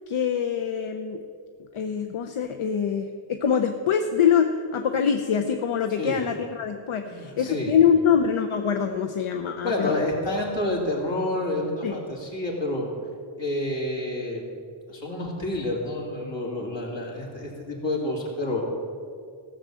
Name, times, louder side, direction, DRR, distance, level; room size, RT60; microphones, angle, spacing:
voice 1, 0.1-1.2 1.7-9.9 11.8-12.0, left 7 dB, 80° left, 6 dB, 0.7 m, -24 dB
voice 2, 7.1-7.7 9.6-12.9 13.4-14.4 14.9-18.6, left 1 dB, 60° left, -2 dB, 2.8 m, -29 dB
14.5 x 6.4 x 7.5 m, 2.3 s
wide cardioid pair, 85°, 49 cm